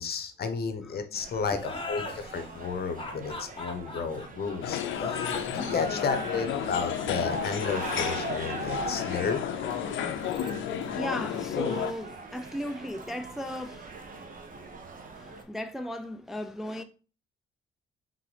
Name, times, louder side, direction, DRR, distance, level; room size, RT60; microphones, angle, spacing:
voice 1, 0.0-9.5, left 5 dB, 50° left, 0.9 m, -32 dB
sound 1, 1.1-15.4, right 3 dB, 45° right, 1.0 m, -41 dB
sound 2, 1.6-10.8, left 3 dB, 25° left, 1.2 m, -40 dB
sound 3, 4.6-11.9, left 9 dB, 80° left, 0.5 m, -32 dB
voice 2, 9.8-16.8, left 1 dB, ahead, 0.3 m, -38 dB
3.8 x 3.7 x 3.3 m
cardioid pair, 90°, 20 cm